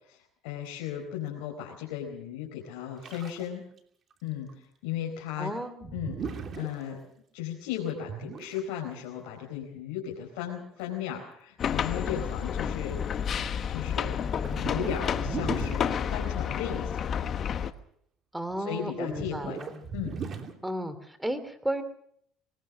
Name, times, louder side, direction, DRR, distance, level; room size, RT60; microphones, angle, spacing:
voice 1, 0.4-3.6 4.2-5.5 5.9-7.0 7.3-13.0 13.7-17.0 18.6-19.6 19.9-20.2, left 10 dB, 85° left, -1 dB, 4.4 m, -36 dB
sound 1, 3.0-3.5 3.8-3.9 4.1-4.2 4.5-4.6 5.8-6.7 8.1-8.6 10.8-10.9 11.6-11.8 12.3-12.9 13.3-16.2 18.5-18.6 19.1-20.5, right 6 dB, 45° right, 2.8 m, -38 dB
voice 2, 5.4-6.0 18.3-19.8 20.6-21.8, right 1 dB, 5° right, 12 dB, 3.0 m, -33 dB
sound 2, 11.6-17.7, left 8 dB, 45° left, 1.2 m, -30 dB
22.5 x 19.5 x 6.3 m, 0.68 s
supercardioid pair, 95°, 0 cm